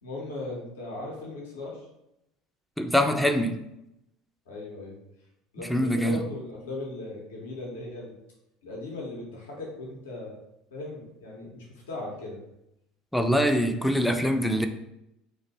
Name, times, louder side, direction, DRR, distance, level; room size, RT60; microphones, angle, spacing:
voice 1, 0.0-1.8 4.5-4.9 5.5-8.1 8.6-10.4 10.7-12.4, left 2 dB, 75° left, -2 dB, 0.7 m, -38 dB
voice 2, 2.8-3.6 5.7-6.2 13.1-14.7, equal, ahead, 5 dB, 0.3 m, -24 dB
2.5 x 2.1 x 3.9 m, 0.85 s
hypercardioid pair, 70°, 0 cm